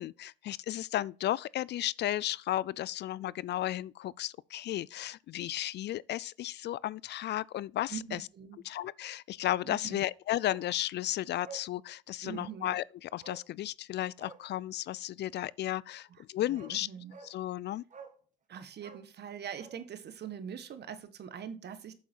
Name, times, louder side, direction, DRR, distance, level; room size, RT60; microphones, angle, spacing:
voice 1, 0.0-8.3 8.6-16.9 17.2-17.8, left 13 dB, 55° left, 0.4 m, -34 dB
voice 2, 7.9-8.6 9.6-10.0 12.2-12.8 16.1-17.1 18.5-22.0, right 8 dB, 50° right, 1.5 m, -43 dB
Bark, 10.4-10.7 11.0-11.1 11.4-11.7 12.3-12.6 13.2-13.5 14.1-14.4 16.0-16.1 16.5-16.8 17.1-17.3 17.9-18.2 18.7-19.8 20.1-20.2, right 5 dB, 35° right, 2.2 m, -50 dB
8.3 x 6.9 x 4.4 m
supercardioid pair, 85°, 21 cm